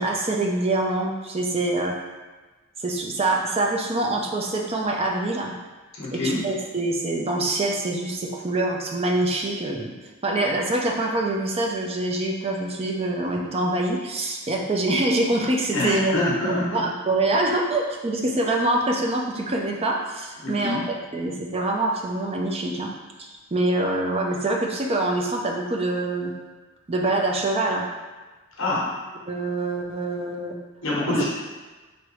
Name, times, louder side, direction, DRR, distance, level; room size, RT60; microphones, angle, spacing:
voice 1, 0.0-2.0 2.8-5.6 6.1-9.9 10.2-16.2 16.4-20.8 21.1-22.9 23.5-26.3 26.9-27.9 29.3-30.5 31.1-31.2, right 2 dB, 30° right, 0 dB, 0.5 m, -25 dB
voice 2, 6.0-6.4 15.7-16.9 20.4-20.8 28.6-28.9 30.8-31.2, left 2 dB, 60° left, -6 dB, 1.1 m, -25 dB
4.7 x 3.0 x 3.0 m, 1.3 s
head